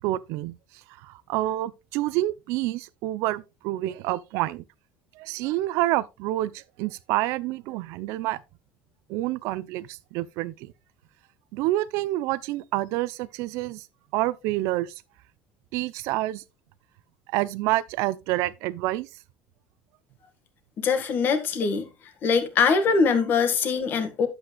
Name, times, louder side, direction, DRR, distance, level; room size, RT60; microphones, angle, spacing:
voice 1, 0.0-0.6 1.0-4.6 5.2-8.4 9.1-10.7 11.5-13.9 14.1-14.9 15.7-16.4 17.3-19.1, right 16 dB, 65° right, 0.6 m, -28 dB
voice 2, 20.8-21.9 22.2-24.3, left 5 dB, 40° left, 1.7 m, -22 dB
10.5 x 8.0 x 2.3 m
cardioid pair, 145°, 5 cm